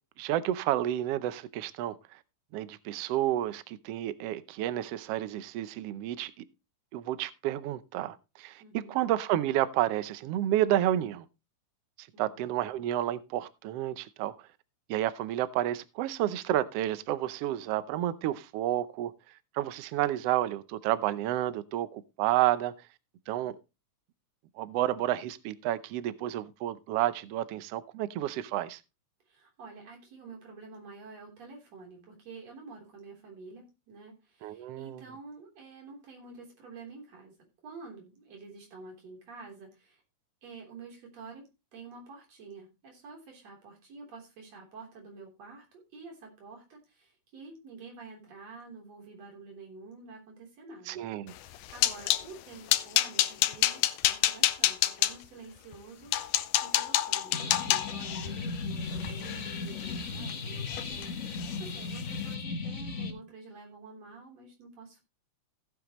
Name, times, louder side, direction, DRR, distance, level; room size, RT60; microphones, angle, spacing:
voice 1, 0.2-2.2 2.5-6.4 6.9-11.3 12.0-14.4 14.9-19.1 19.5-22.7 23.3-23.5 24.6-28.8 34.4-35.0 50.9-51.3, right 13 dB, 90° right, 1.3 m, -30 dB
voice 2, 8.6-9.0 12.1-12.5 23.4-23.5 29.3-37.3 37.6-40.0 40.4-51.0 51.3-65.0, right 4 dB, 55° right, 4.6 m, -49 dB
sound 1, 51.4-52.3 52.7-55.1 55.7-55.8 56.1-60.3 60.7-61.1 61.4-61.6 62.0-62.1, left 14 dB, 80° left, 2.2 m, -28 dB
sound 2, 57.3-63.1, left 4 dB, 60° left, 0.7 m, -36 dB
15.0 x 8.6 x 3.0 m
omnidirectional pair, 3.7 m